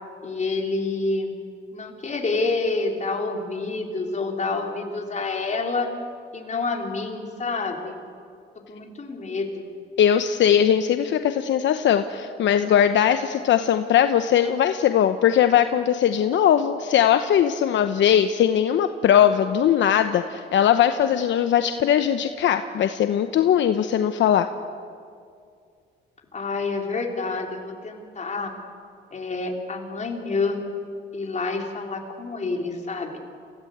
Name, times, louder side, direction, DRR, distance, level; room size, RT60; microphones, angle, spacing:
voice 1, 0.2-1.3 1.7-5.9 6.3-8.0 8.7-9.7 26.3-28.5 29.1-30.6 31.1-33.2, left 3 dB, 35° left, 1 dB, 4.1 m, -28 dB
voice 2, 10.0-24.5, left 9 dB, 70° left, 8 dB, 1.0 m, -20 dB
28.5 x 17.0 x 8.1 m, 2.3 s
cardioid pair, 90°, 20 cm